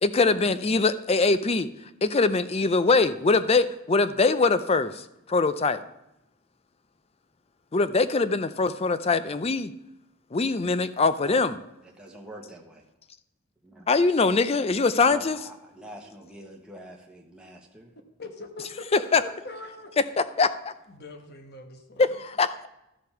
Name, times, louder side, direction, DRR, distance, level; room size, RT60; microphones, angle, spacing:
voice 1, 0.0-1.7 2.0-5.0 5.3-5.8 7.7-9.7 10.3-11.5 13.9-15.4 19.1-19.2 20.4-20.7 22.0-22.7, left 3 dB, 30° left, 13 dB, 0.5 m, -22 dB
voice 2, 11.2-11.5 11.8-12.8 13.6-13.9 15.0-17.9, right 1 dB, 5° right, -1 dB, 1.0 m, -45 dB
voice 3, 18.2-19.9 20.9-22.1, left 2 dB, 50° left, 6 dB, 1.1 m, -41 dB
13.0 x 5.1 x 5.7 m, 0.88 s
head